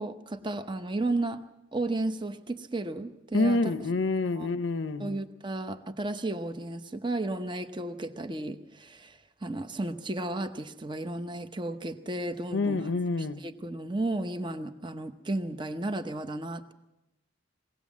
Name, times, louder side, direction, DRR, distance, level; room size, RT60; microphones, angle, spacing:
voice 1, 0.0-1.4 1.7-3.7 4.2-4.5 5.0-12.9 13.2-16.7, right 2 dB, 25° right, 0.9 m, -33 dB
voice 2, 3.3-5.2 12.5-13.4, left 3 dB, 80° left, 0.7 m, -27 dB
22.0 x 17.5 x 7.3 m
head